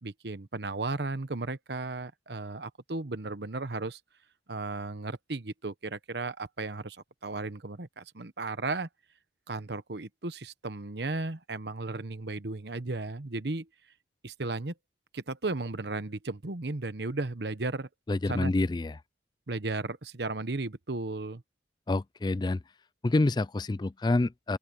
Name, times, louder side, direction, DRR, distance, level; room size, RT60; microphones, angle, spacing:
voice 1, 0.0-4.0 4.5-8.9 9.5-13.7 14.2-14.7 15.1-17.9 18.2-18.5 19.5-21.4, right 3 dB, 65° right, 1.1 m, -35 dB
voice 2, 18.1-18.9 21.9-22.6 23.0-24.6, left 2 dB, 25° left, 0.4 m, -27 dB
open air
head